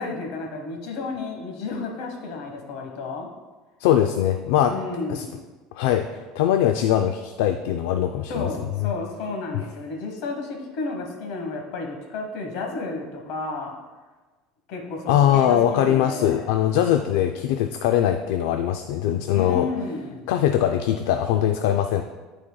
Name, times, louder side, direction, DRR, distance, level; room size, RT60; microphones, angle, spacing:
voice 1, 0.0-3.3 4.7-5.3 8.3-13.7 14.7-16.5 19.3-20.3, left 3 dB, 65° left, 2 dB, 1.2 m, -32 dB
voice 2, 3.8-4.7 5.1-5.3 5.8-8.5 8.8-8.9 15.1-19.7 20.3-22.0, left 10 dB, 80° left, 7 dB, 0.3 m, -21 dB
11.5 x 4.2 x 2.3 m, 1.3 s
cardioid pair, 145°, 0 cm